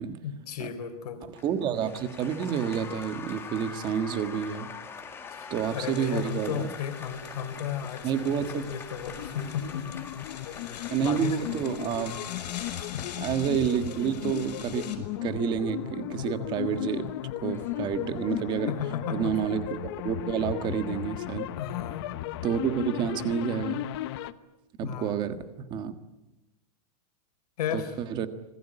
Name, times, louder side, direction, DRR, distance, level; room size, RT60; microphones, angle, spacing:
voice 1, 0.2-1.2 5.3-10.0 10.6-11.6 12.7-13.0 18.6-19.3 21.6-22.2 24.8-25.2 27.6-27.9, left 8 dB, 70° left, 8 dB, 3.9 m, -35 dB
Applause, 1.2-18.4, left 6 dB, 10° left, 2.2 m, -45 dB
voice 2, 1.4-4.7 5.5-6.7 8.0-8.7 10.9-12.1 13.2-17.1 17.4-18.7 19.1-19.8 20.0-21.5 22.4-23.8 24.8-25.9 27.7-28.3, right 8 dB, 20° right, 10 dB, 1.5 m, -29 dB
sound 1, 5.6-15.0, left 8 dB, 85° left, 5.3 m, -45 dB
sound 2, 9.2-24.3, left 14 dB, 40° left, 1.0 m, -35 dB
26.5 x 19.5 x 10.0 m, 0.98 s
supercardioid pair, 170°, 21 cm